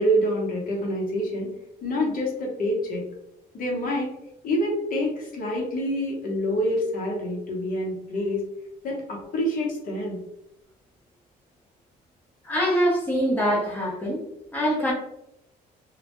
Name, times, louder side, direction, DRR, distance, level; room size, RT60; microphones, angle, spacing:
voice 1, 0.0-1.5 1.8-3.0 3.5-4.1 4.4-8.4 8.8-10.2, equal, 55° left, -1 dB, 0.8 m, -26 dB
voice 2, 12.4-14.2 14.5-14.9, equal, 10° left, -4 dB, 0.6 m, -24 dB
2.1 x 2.1 x 2.9 m, 0.84 s
cardioid pair, 110°, 17 cm